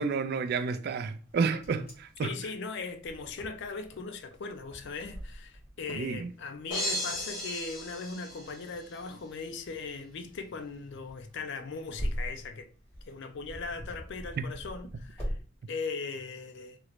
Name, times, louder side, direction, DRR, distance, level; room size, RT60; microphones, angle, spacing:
voice 1, 0.0-2.3 5.9-6.3 14.4-14.5, right 5 dB, 50° right, 0.3 m, -30 dB
Wind, 1.2-15.4, equal, 15° left, 1.4 m, -43 dB
voice 2, 2.2-12.7 13.1-15.4 15.7-16.8, left 4 dB, 60° left, 0.4 m, -39 dB
sound 1, 6.7-9.0, equal, 40° left, 1.1 m, -35 dB
3.0 x 2.4 x 3.0 m
head